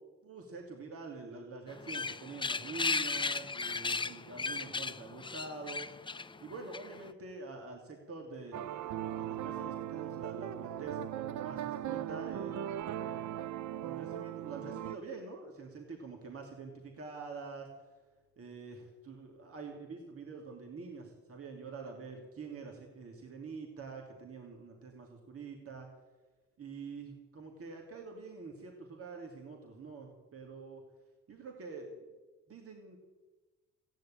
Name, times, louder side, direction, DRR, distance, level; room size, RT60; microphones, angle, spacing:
voice 1, 0.2-5.9 6.4-13.4 13.8-17.7 18.4-25.9 26.6-30.8 31.3-32.1 32.5-33.0, right 4 dB, 50° right, 1 dB, 2.8 m, -46 dB
sound 1, 1.7-7.1, left 4 dB, 15° left, 0.6 m, -36 dB
sound 2, 8.5-15.0, right 11 dB, 70° right, 0.7 m, -38 dB
15.5 x 10.0 x 8.9 m, 1.2 s
cardioid pair, 90°, 30 cm